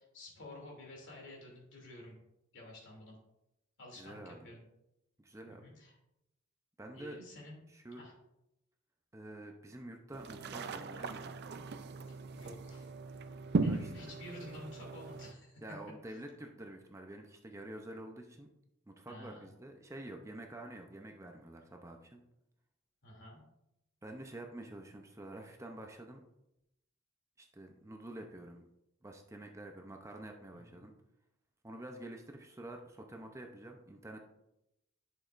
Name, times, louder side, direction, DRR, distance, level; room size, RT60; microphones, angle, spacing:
voice 1, 0.0-2.2 2.5-3.2 3.8-4.6 5.4-6.0 6.9-7.6 8.0-8.1 12.3-12.9 13.6-15.6 19.0-19.5 23.0-23.4 30.5-30.9, left 1 dB, 65° left, -2 dB, 2.8 m, -51 dB
voice 2, 4.0-4.5 5.2-5.6 6.8-7.2 7.7-8.0 9.1-11.3 13.7-13.9 15.6-18.5 18.9-22.2 24.0-26.2 27.4-28.6 29.0-30.9 31.6-34.2, right 1 dB, 15° right, 3 dB, 0.6 m, -48 dB
sound 1, 10.1-15.3, right 3 dB, 55° right, 0.5 m, -38 dB
11.0 x 6.4 x 2.5 m, 0.86 s
head